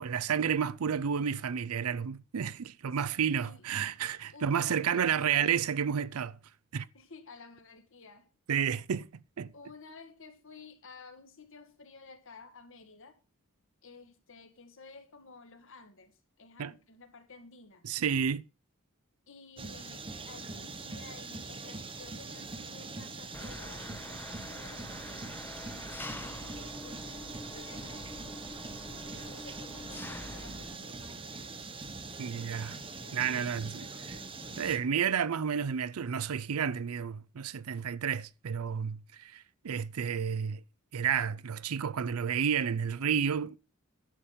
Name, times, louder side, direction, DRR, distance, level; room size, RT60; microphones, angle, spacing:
voice 1, 0.0-6.4 6.7-6.9 8.5-9.1 9.4-9.5 16.6-16.7 17.8-18.4 32.2-32.8 33.1-33.7 34.6-40.6 40.9-43.6, right 7 dB, 80° right, 0.5 m, -31 dB
voice 2, 3.1-3.7 4.3-5.3 6.9-8.3 9.5-13.2 13.8-17.9 19.3-28.7 29.1-31.6 33.0-34.3, left 3 dB, 65° left, 1.8 m, -53 dB
sound 1, 19.6-34.8, right 3 dB, 25° right, 1.1 m, -43 dB
Engine, 23.3-30.7, left 1 dB, 10° left, 0.7 m, -45 dB
11.0 x 7.3 x 5.1 m
head